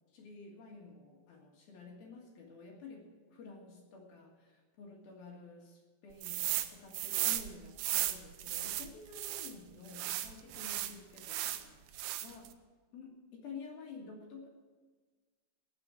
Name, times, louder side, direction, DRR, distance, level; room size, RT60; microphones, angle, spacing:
voice 1, 0.1-12.5 12.9-14.5, left 4 dB, 60° left, -1 dB, 3.0 m, -51 dB
sound 1, 6.2-6.7 6.9-9.5 9.9-11.6 11.9-12.5, right 13 dB, 85° right, 2.6 m, -35 dB
18.5 x 7.0 x 8.8 m, 1.4 s
omnidirectional pair, 5.8 m